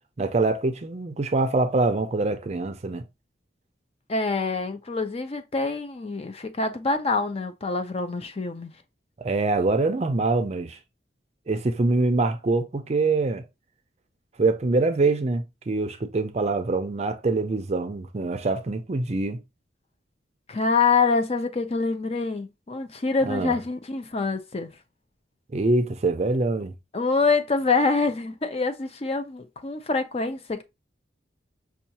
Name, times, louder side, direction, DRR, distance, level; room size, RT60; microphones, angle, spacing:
voice 1, 0.2-3.0 9.2-10.8 11.5-13.4 14.4-19.4 23.3-23.6 25.5-26.7, right 3 dB, 35° right, 0.5 m, -24 dB
voice 2, 4.1-8.7 20.5-24.7 26.9-30.6, left 4 dB, 35° left, 0.5 m, -25 dB
5.5 x 2.3 x 2.7 m
head